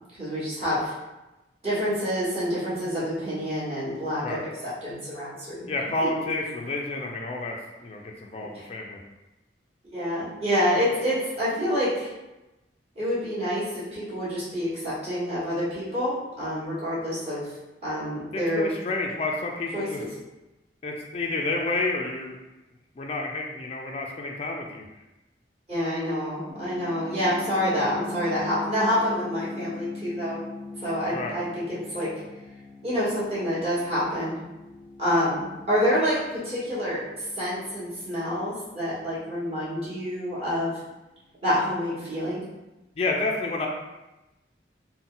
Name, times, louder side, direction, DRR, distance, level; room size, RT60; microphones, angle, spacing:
voice 1, 0.2-0.9 1.6-4.5 4.8-5.7 8.5-8.7 9.9-12.1 12.9-17.5 17.8-18.7 19.7-20.1 25.7-30.4 30.8-32.1 32.8-34.3 35.0-40.8 41.4-42.4, equal, 35° right, -11 dB, 1.4 m, -27 dB
voice 2, 5.7-9.0 18.3-20.0 20.8-22.4 23.0-24.8 31.1-31.4 43.0-43.7, left 2 dB, 35° left, 0 dB, 0.3 m, -30 dB
sound 1, 26.5-41.3, left 3 dB, 60° right, 1.1 m, -42 dB
3.8 x 2.2 x 3.8 m, 1.0 s
head